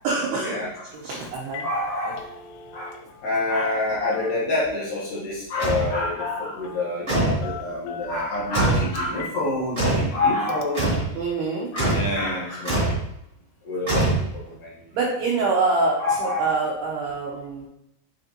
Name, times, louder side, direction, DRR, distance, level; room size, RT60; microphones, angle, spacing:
voice 1, 0.0-0.6 0.9-1.6 11.1-11.7 14.9-17.7, right 3 dB, 80° right, -4 dB, 2.3 m, -25 dB
Telephone, 0.9-1.1 1.4-1.7 2.0-3.3 3.6-4.6 5.7-6.0 6.2-6.9 7.4-9.4 9.8-9.9 10.5-10.6, left 6 dB, 80° left, 2.9 m, -39 dB
voice 2, 1.6-2.2 2.7-2.9 3.2-11.0 11.7-12.9 13.6-14.7 16.0-16.5, left 2 dB, 65° left, -8 dB, 2.2 m, -27 dB
sound 1, 5.6-5.9 7.1-7.5 8.5-8.9 9.8-10.1 10.7-11.1 11.8-12.1 12.6-13.0 13.9-14.5, right 2 dB, 45° right, 0.8 m, -22 dB
9.5 x 3.4 x 2.9 m, 0.81 s
omnidirectional pair, 5.7 m